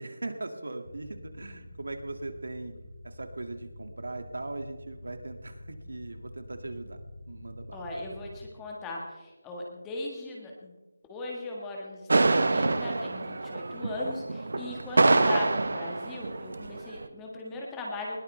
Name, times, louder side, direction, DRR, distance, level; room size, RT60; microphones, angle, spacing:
voice 1, 0.0-2.8 3.0-7.0 7.3-7.8 14.5-14.8, right 2 dB, 85° right, 7 dB, 2.2 m, -39 dB
sound 1, 0.9-8.5, left 1 dB, 60° left, 2.5 m, -47 dB
voice 2, 7.7-10.7 11.1-18.2, left 2 dB, 5° left, -2 dB, 1.6 m, -38 dB
sound 2, 12.1-17.1, right 3 dB, 55° right, 1.0 m, -26 dB
20.5 x 18.5 x 3.4 m, 1.2 s
figure-of-eight pair, 180°, 0 cm